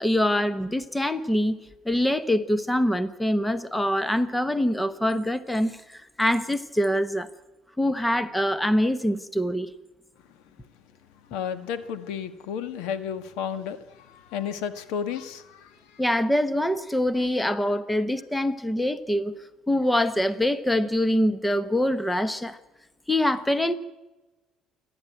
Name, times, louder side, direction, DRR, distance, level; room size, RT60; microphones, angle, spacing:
voice 1, 0.0-1.6 1.8-7.3 7.8-9.7 16.0-19.3 19.7-22.6 23.1-23.7, left 1 dB, 5° left, 1.2 m, -24 dB
voice 2, 11.3-13.8 14.3-15.7, left 8 dB, 80° left, 1.8 m, -32 dB
28.5 x 11.5 x 9.2 m
cardioid pair, 120°, 0 cm